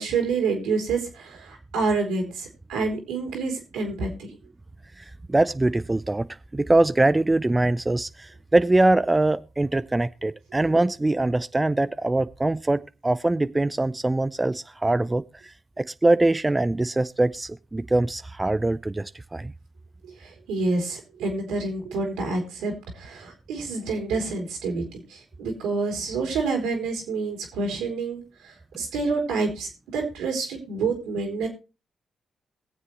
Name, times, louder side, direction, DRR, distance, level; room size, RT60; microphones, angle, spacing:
voice 1, 0.0-4.1 20.2-31.5, right 4 dB, 85° right, 3.3 m, -28 dB
voice 2, 5.0-6.3 6.5-19.5, right 2 dB, 20° right, 0.5 m, -23 dB
22.0 x 7.5 x 3.1 m
hypercardioid pair, 45°, 0 cm